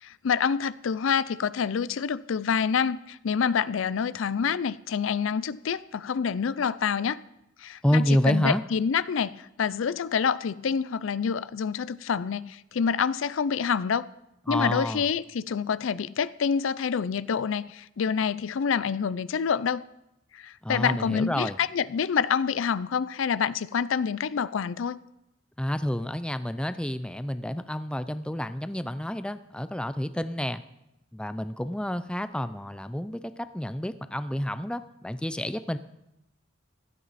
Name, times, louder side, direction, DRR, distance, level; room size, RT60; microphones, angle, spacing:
voice 1, 0.0-7.2 7.6-14.0 14.5-19.8 20.3-25.0, left 6 dB, 75° left, 0.4 m, -27 dB
voice 2, 7.8-8.6 14.5-15.1 20.6-21.6 25.6-30.6 31.1-35.8, equal, 5° left, 0.5 m, -29 dB
16.0 x 12.5 x 4.1 m
head